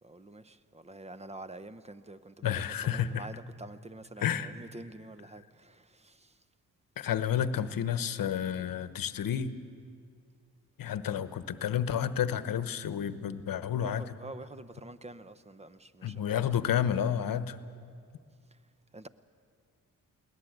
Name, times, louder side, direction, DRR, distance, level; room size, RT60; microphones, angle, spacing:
voice 1, 0.0-6.4 13.7-16.5 18.9-19.1, right 2 dB, 20° right, 0.7 m, -47 dB
voice 2, 2.4-3.3 4.2-4.5 7.0-9.5 10.8-14.0 16.0-17.6, left 9 dB, 70° left, 1.0 m, -30 dB
22.5 x 18.0 x 7.9 m
cardioid pair, 105°, 35 cm